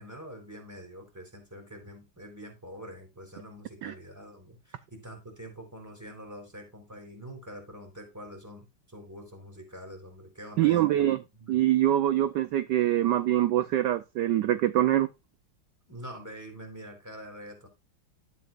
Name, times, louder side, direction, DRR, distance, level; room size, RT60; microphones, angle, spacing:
voice 1, 0.0-10.9 11.3-11.6 15.9-17.7, equal, 10° right, 4.0 m, -45 dB
voice 2, 10.6-11.2 11.5-15.1, right 13 dB, 70° right, 1.1 m, -24 dB
12.5 x 9.7 x 2.5 m
omnidirectional pair, 2.2 m